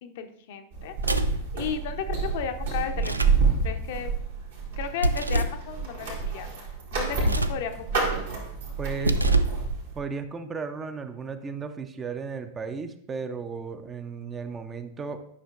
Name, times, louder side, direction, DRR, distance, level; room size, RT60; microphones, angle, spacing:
voice 1, 0.0-1.0 1.5-3.2 3.6-4.1 4.8-8.1, left 7 dB, 50° left, 8 dB, 0.5 m, -34 dB
sound 1, 0.7-10.0, right 4 dB, 65° right, 1.7 m, -28 dB
sound 2, 1.0-1.5 2.9-3.4 5.0-5.6 7.1-7.7 8.9-9.6, right 2 dB, 80° right, 0.3 m, -26 dB
voice 2, 8.8-9.3 9.9-15.2, right 5 dB, 20° right, 9 dB, 0.5 m, -35 dB
9.7 x 5.6 x 2.4 m, 0.71 s
figure-of-eight pair, 90°, 0 cm